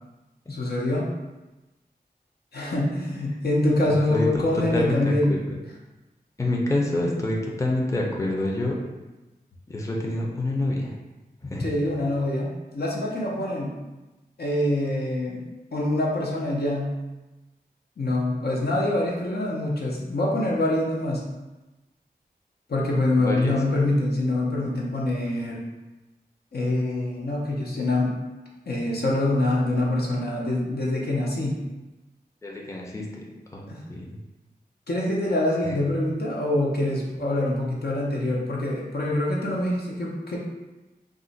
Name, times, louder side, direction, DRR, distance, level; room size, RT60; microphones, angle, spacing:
voice 1, 0.5-1.1 2.5-5.4 11.6-13.8 14.4-15.4 15.7-16.9 18.0-21.2 22.7-25.6 26.5-28.2 28.7-31.6 33.7-33.8 34.9-40.4, left 1 dB, 80° left, -3 dB, 0.6 m, -25 dB
voice 2, 4.7-5.4 6.4-8.8 9.7-10.9 11.4-11.7 23.2-23.6 32.4-33.2 33.5-34.2 35.6-35.7, left 1 dB, 20° left, -2 dB, 0.5 m, -27 dB
2.4 x 2.1 x 3.8 m, 1.1 s
wide cardioid pair, 65°, 16 cm